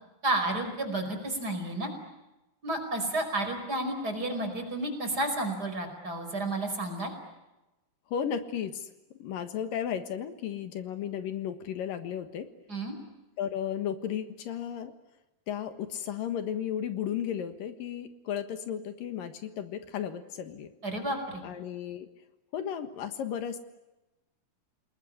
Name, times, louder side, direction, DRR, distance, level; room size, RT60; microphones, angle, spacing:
voice 1, 0.2-1.9 2.6-7.1 12.7-12.9 20.8-21.4, right 2 dB, 25° right, 5 dB, 5.4 m, -31 dB
voice 2, 8.1-8.9 9.2-12.5 13.4-14.9 15.5-20.7 21.4-22.1 22.5-23.6, left 9 dB, 75° left, 9 dB, 3.2 m, -34 dB
28.5 x 20.5 x 9.9 m, 1.0 s
omnidirectional pair, 4.0 m